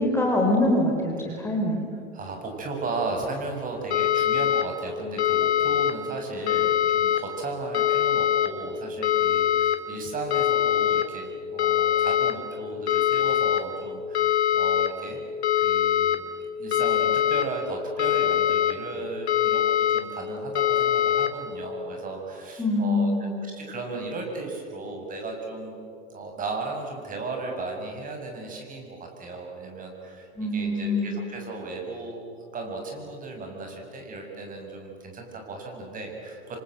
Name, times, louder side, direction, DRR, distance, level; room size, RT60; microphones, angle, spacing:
voice 1, 0.0-1.9 22.6-23.4 30.4-31.2, left 1 dB, 5° left, 0 dB, 3.6 m, -24 dB
voice 2, 2.1-11.2 11.5-15.2 15.6-16.2 16.6-25.8 26.1-32.3 32.5-36.6, right 3 dB, 25° right, 2 dB, 6.8 m, -35 dB
sound 1, 3.9-4.6 5.2-5.9 6.5-7.2 7.7-8.5 9.0-9.8 10.3-11.0 11.6-12.3 12.9-13.6 14.1-14.9 15.4-16.2 16.7-17.4 18.0-18.7 19.3-20.0 20.6-21.3, left 10 dB, 70° left, 2.5 m, -22 dB
28.0 x 25.0 x 7.9 m, 2.6 s
hypercardioid pair, 110°, 34 cm